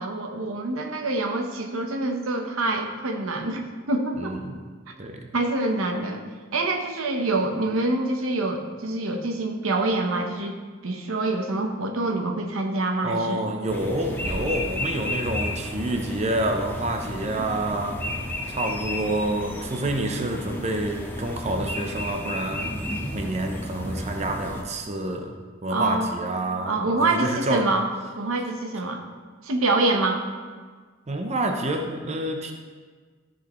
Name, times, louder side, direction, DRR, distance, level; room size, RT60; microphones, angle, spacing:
voice 1, 0.0-4.4 5.3-6.2 6.5-10.6 10.8-13.5 25.7-26.1 26.7-27.9 28.2-29.0 29.4-30.2, right 2 dB, 85° right, 4 dB, 1.0 m, -26 dB
voice 2, 4.2-4.5 5.0-5.3 13.0-18.0 18.5-22.7 23.1-25.4 25.6-27.7 31.1-32.5, right 1 dB, 35° right, 4 dB, 0.7 m, -28 dB
sound 1, 13.7-24.6, left 1 dB, 10° left, 0.8 m, -32 dB
13.0 x 6.4 x 3.1 m, 1.5 s
head